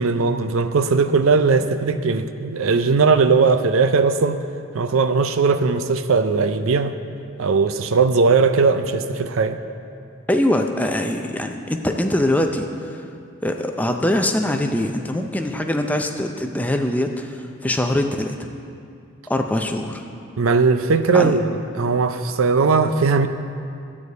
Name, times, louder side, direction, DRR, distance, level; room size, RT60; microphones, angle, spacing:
voice 1, 0.0-4.4 4.7-7.0 7.4-9.6 20.4-23.3, right 4 dB, 80° right, 10 dB, 0.5 m, -18 dB
voice 2, 10.3-12.7 13.4-18.5 19.3-20.0 21.1-21.3, left 1 dB, 5° left, 4 dB, 0.5 m, -22 dB
12.0 x 4.8 x 8.0 m, 2.5 s
head